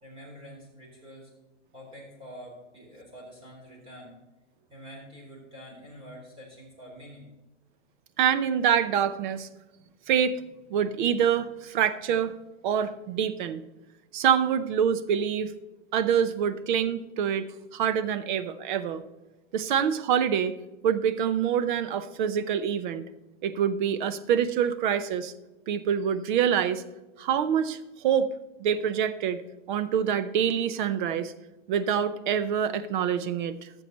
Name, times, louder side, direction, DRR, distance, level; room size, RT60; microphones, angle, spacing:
voice 1, 0.0-1.3 1.7-4.1 4.7-7.3, equal, 15° right, -2 dB, 4.0 m, -46 dB
voice 2, 8.2-9.5 10.1-10.4 10.7-12.3 12.6-13.6 14.1-15.5 15.9-17.5 17.7-19.0 19.5-20.5 20.8-23.0 23.4-25.3 25.7-26.8 27.2-28.3 28.6-29.4 29.7-31.3 31.7-33.5, right 8 dB, 40° right, 13 dB, 0.7 m, -26 dB
12.0 x 7.1 x 4.1 m, 1.1 s
hypercardioid pair, 140°, 37 cm